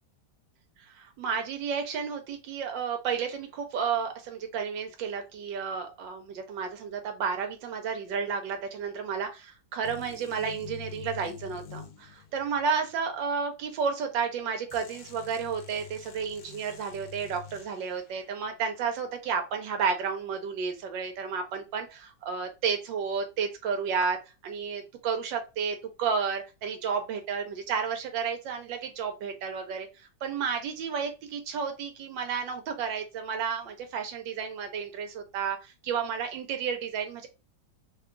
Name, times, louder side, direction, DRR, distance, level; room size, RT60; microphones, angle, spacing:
voice 1, 0.8-24.2 24.4-37.3, right 6 dB, 80° right, 5 dB, 1.3 m, -32 dB
sound 1, 9.8-12.7 14.7-18.1, left 8 dB, 65° left, 1.0 m, -46 dB
3.1 x 2.2 x 3.6 m, 0.29 s
omnidirectional pair, 2.0 m